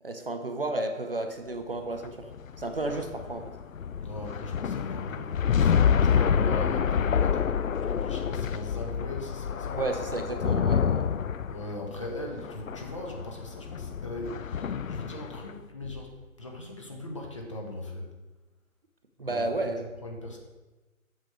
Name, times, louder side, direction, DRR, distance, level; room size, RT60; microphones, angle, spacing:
voice 1, 0.0-2.3 2.6-3.5 9.7-11.1 19.2-19.9, right 2 dB, 45° right, 5 dB, 0.6 m, -32 dB
sound 1, 1.9-15.5, left 7 dB, 70° left, 0.5 m, -28 dB
voice 2, 4.0-10.2 11.4-18.2 19.2-19.7 20.0-20.4, left 1 dB, 20° left, 0 dB, 0.8 m, -39 dB
7.8 x 6.3 x 4.4 m, 1.2 s
figure-of-eight pair, 150°, 42 cm